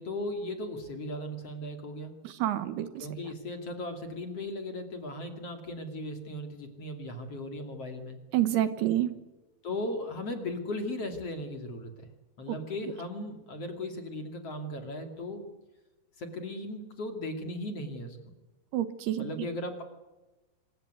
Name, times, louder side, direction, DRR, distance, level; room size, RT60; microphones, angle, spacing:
voice 1, 0.0-2.2 3.0-8.2 9.6-12.1 12.4-15.5 16.2-18.2 19.2-19.8, left 1 dB, 40° left, 5 dB, 3.1 m, -37 dB
voice 2, 2.2-3.1 8.3-9.1 12.5-12.6 18.7-19.3, right 12 dB, 75° right, 12 dB, 3.1 m, -28 dB
26.5 x 16.0 x 9.5 m, 1.1 s
omnidirectional pair, 4.9 m